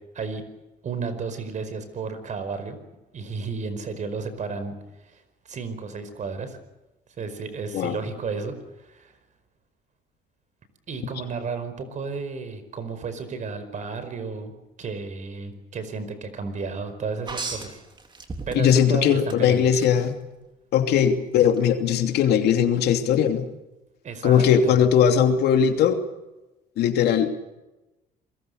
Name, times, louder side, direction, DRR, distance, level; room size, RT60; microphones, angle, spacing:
voice 1, 0.8-2.8 3.1-6.6 7.2-9.1 10.9-14.5 14.8-17.8 18.5-19.8 24.0-24.9, right 4 dB, 45° right, 11 dB, 4.9 m, -33 dB
sound 1, 17.3-18.9 19.3-19.9 21.5-21.6, right 3 dB, 30° right, 3.7 m, -34 dB
voice 2, 18.5-20.1 20.7-23.5 24.2-26.0 26.8-27.3, left 8 dB, 75° left, 6 dB, 2.9 m, -19 dB
28.0 x 22.0 x 6.7 m, 1.0 s
cardioid pair, 110°, 17 cm